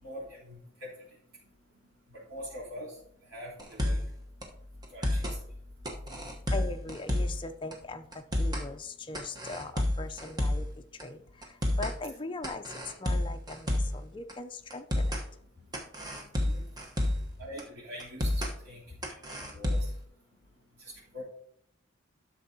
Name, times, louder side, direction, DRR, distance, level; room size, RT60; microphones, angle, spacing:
voice 1, 0.0-0.9 2.3-2.9 3.3-4.0 4.9-5.3 16.4-16.6 17.4-18.8 19.5-19.9 20.8-21.2, equal, 85° right, -8 dB, 3.7 m, -43 dB
sound 1, 3.6-4.1 4.4-4.5 4.8-5.4 5.9-7.4 7.7-7.8 8.1-8.7 9.1-10.7 11.0-11.1 11.4-12.0 12.4-14.0 14.3-14.4 14.7-15.2 15.7-17.3 17.6-17.7 18.0-18.5 19.0-20.0, left 1 dB, 20° right, 1.1 m, -30 dB
voice 2, 6.5-10.7 11.0-11.2 11.8-12.6 13.0-15.2, left 3 dB, 25° left, 6 dB, 0.5 m, -40 dB
12.0 x 6.7 x 2.8 m, 0.67 s
head